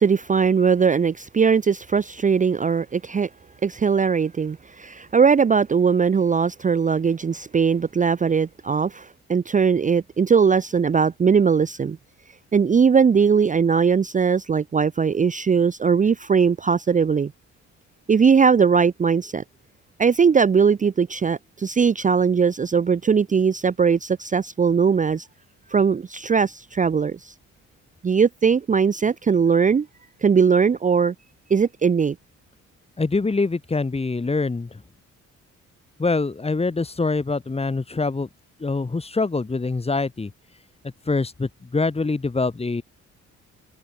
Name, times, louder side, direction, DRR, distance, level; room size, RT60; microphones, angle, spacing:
voice 1, 0.0-3.3 3.6-12.0 12.5-17.3 18.1-19.4 20.0-25.3 25.7-27.3 28.0-29.9 30.2-31.1 31.5-32.2, right 6 dB, 25° right, 0.6 m, -20 dB
voice 2, 33.0-34.7 36.0-38.3 38.6-40.3 41.1-42.8, left 3 dB, 20° left, 1.8 m, -24 dB
cardioid pair, 90°, 30 cm